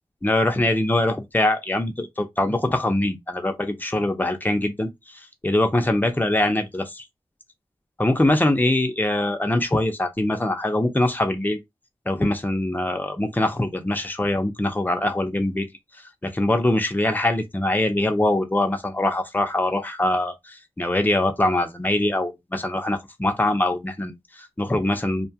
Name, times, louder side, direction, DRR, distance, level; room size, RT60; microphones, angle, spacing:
voice 1, 0.2-4.9 5.4-7.0 8.0-11.6 12.1-15.7 16.2-25.3, left 1 dB, 15° left, 0.6 m, -23 dB
2.8 x 2.2 x 2.7 m
wide cardioid pair, 55°, 11 cm